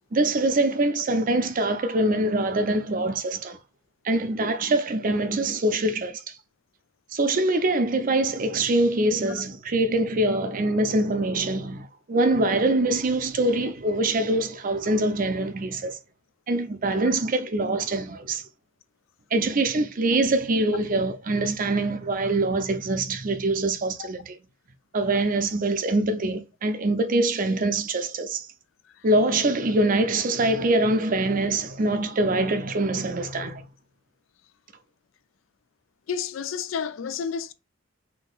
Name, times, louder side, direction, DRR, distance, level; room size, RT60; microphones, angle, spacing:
voice 1, 0.1-3.6 4.0-6.3 7.1-16.0 16.5-18.4 19.3-24.4 24.9-28.5 29.0-33.6, right 2 dB, 45° right, 0.5 m, -24 dB
voice 2, 36.1-37.5, left 7 dB, 80° left, 0.4 m, -31 dB
3.7 x 2.8 x 2.3 m
head